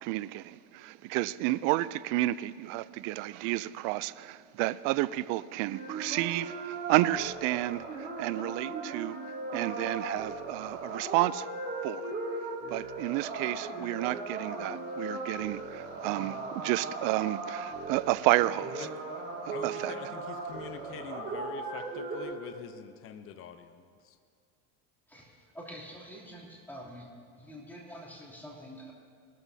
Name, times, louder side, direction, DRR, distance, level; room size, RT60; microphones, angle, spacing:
voice 1, 0.0-9.2 9.5-11.5 11.8-12.1 12.7-18.9 19.4-19.9, right 18 dB, 60° right, 0.5 m, -31 dB
sound 1, 5.7-22.2, right 3 dB, 25° right, 4.1 m, -38 dB
voice 2, 19.5-24.2, left 8 dB, 35° left, 0.7 m, -45 dB
voice 3, 25.1-27.1 27.4-28.9, equal, 5° left, 2.9 m, -46 dB
20.0 x 13.0 x 2.8 m
supercardioid pair, 125°, 39 cm